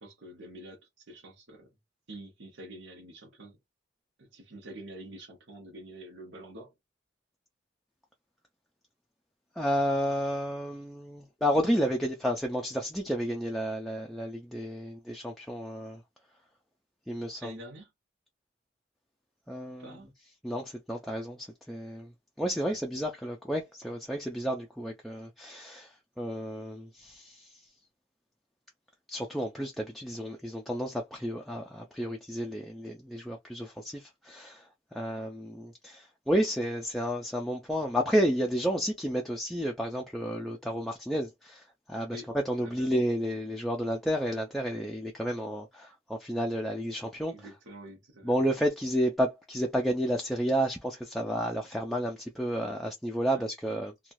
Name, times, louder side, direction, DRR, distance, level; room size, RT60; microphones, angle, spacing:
voice 1, 0.0-1.7 2.1-3.6 4.2-6.7 17.4-17.9 19.8-20.1 22.6-22.8 34.9-35.0 42.1-42.3 42.6-42.9 47.3-48.3 53.3-53.4, right 1 dB, 80° right, 1.1 m, -47 dB
voice 2, 9.6-16.0 17.1-17.6 19.5-20.0 20.4-22.1 22.4-27.7 29.1-47.5 48.2-54.1, equal, ahead, 0.4 m, -31 dB
3.0 x 2.3 x 2.6 m
head